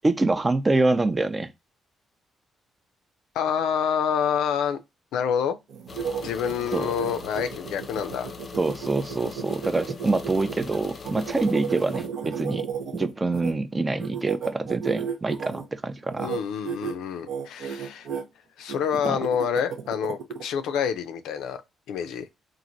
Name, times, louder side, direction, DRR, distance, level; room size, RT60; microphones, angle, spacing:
voice 1, 0.0-1.5 6.7-6.9 8.6-12.7 12.9-16.3 19.1-19.2, right 2 dB, 20° right, 0.4 m, -25 dB
voice 2, 3.3-4.8 5.1-5.6 6.2-8.3 16.2-18.1 18.6-21.6 21.9-22.3, left 8 dB, 85° left, 0.4 m, -27 dB
sound 1, 5.7-13.5 14.0-15.6 16.1-16.4 16.6-16.9 17.3-18.2 18.7-20.4, right 7 dB, 80° right, 0.7 m, -33 dB
sound 2, 5.9-12.1, left 5 dB, 40° left, 0.6 m, -41 dB
3.0 x 2.5 x 2.5 m
cardioid pair, 90°, 0 cm